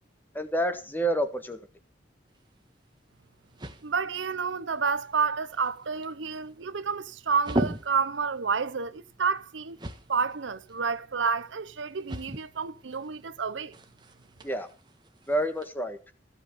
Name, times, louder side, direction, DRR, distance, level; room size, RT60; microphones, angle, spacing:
voice 1, 0.3-1.6 14.4-14.7 15.3-16.0, right 1 dB, 10° left, 1.4 m, -28 dB
sound 1, 2.3-15.7, right 1 dB, 25° right, 1.4 m, -40 dB
voice 2, 3.8-9.8 10.1-13.7, right 5 dB, 85° right, 0.8 m, -29 dB
15.5 x 5.3 x 8.1 m
head